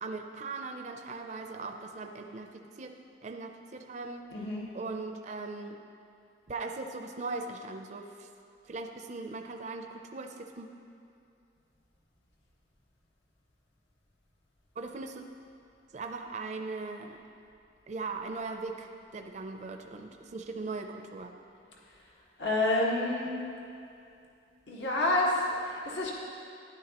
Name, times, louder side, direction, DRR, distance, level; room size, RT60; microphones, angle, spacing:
voice 1, 0.0-2.9 3.2-4.3 4.7-5.8 6.5-8.3 8.7-10.7 14.8-15.2 15.9-17.2 17.9-21.3, right 3 dB, 40° right, 5 dB, 0.5 m, -39 dB
voice 2, 4.3-4.7 22.4-23.4 24.7-26.1, left 2 dB, 80° left, -3 dB, 1.5 m, -28 dB
12.5 x 10.5 x 2.9 m, 2.6 s
head